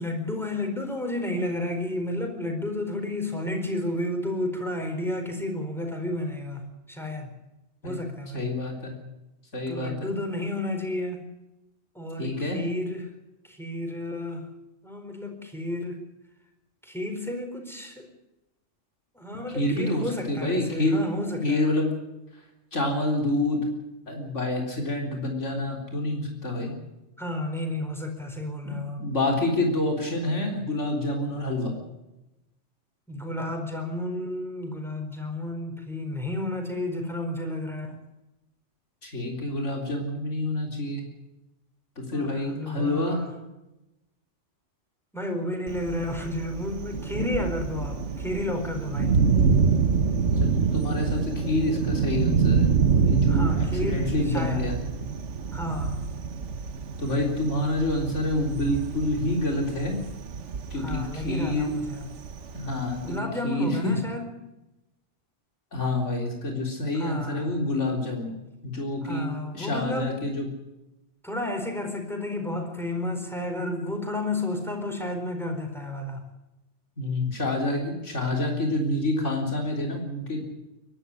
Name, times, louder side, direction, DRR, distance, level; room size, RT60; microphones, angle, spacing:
voice 1, 0.0-7.3 7.8-8.5 9.7-11.3 11.9-13.1 13.4-14.5 14.8-16.0 16.8-18.1 19.1-21.7 27.2-29.0 33.1-38.0 42.1-43.3 45.1-49.1 53.3-54.7 55.5-56.0 60.8-62.0 63.0-64.3 66.9-67.6 69.0-70.1 71.2-76.2, left 1 dB, ahead, 4 dB, 4.3 m, -32 dB
voice 2, 8.3-8.9 9.5-10.1 12.2-12.6 19.5-21.0 21.4-21.9 22.7-23.6 24.1-26.7 28.7-31.7 39.0-41.0 42.0-43.2 50.4-52.7 53.1-54.7 57.0-60.0 60.7-61.7 62.5-63.9 65.7-68.4 68.6-69.3 69.5-70.5 77.0-80.4, left 2 dB, 80° left, 1 dB, 4.1 m, -27 dB
Thunder, 45.7-63.2, right 5 dB, 80° right, 1.4 m, -26 dB
23.0 x 12.5 x 9.9 m, 0.96 s
omnidirectional pair, 1.2 m